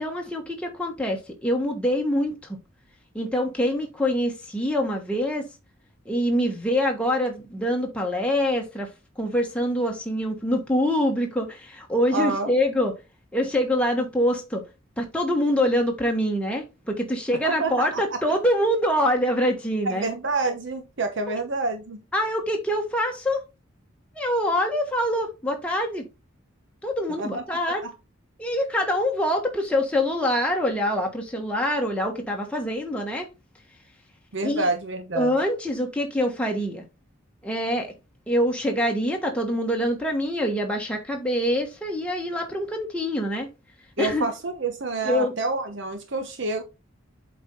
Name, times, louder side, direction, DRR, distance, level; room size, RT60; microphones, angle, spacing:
voice 1, 0.0-2.6 3.1-5.4 6.1-8.9 9.2-12.9 13.3-14.6 15.0-20.1 22.1-23.4 24.1-26.0 26.8-27.9 28.4-33.3 34.4-34.7 35.1-36.8 37.4-37.9 38.3-43.5 44.0-44.3 45.0-45.3, equal, 5° left, 1.2 m, -25 dB
voice 2, 12.1-12.5 17.4-18.2 19.9-22.0 27.2-27.4 27.8-27.9 34.3-35.3 44.0-46.6, right 3 dB, 60° right, 0.9 m, -28 dB
7.9 x 4.3 x 3.8 m
head